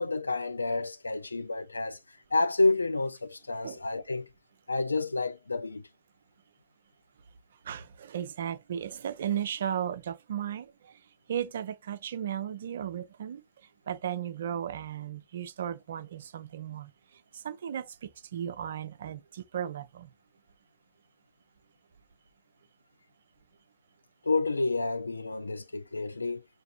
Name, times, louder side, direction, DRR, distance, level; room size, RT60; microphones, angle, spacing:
voice 1, 0.0-2.0 2.3-4.3 4.7-5.8 24.2-26.4, left 3 dB, 80° left, 0.3 m, -29 dB
voice 2, 7.6-11.0 11.3-13.4 13.9-16.9 17.3-20.1, right 9 dB, 65° right, 0.4 m, -35 dB
5.8 x 2.6 x 2.5 m
figure-of-eight pair, 90°, 0 cm